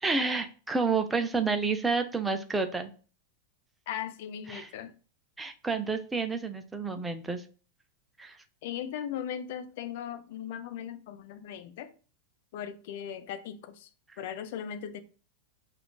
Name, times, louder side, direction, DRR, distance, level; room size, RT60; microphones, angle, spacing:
voice 1, 0.0-2.9 4.5-4.7 5.4-7.4 8.2-8.4, right 4 dB, 10° right, 0.5 m, -29 dB
voice 2, 3.9-4.9 8.6-11.9 12.5-13.9 14.2-15.0, left 9 dB, 50° left, 0.4 m, -38 dB
5.6 x 2.4 x 2.2 m
figure-of-eight pair, 90°, 0 cm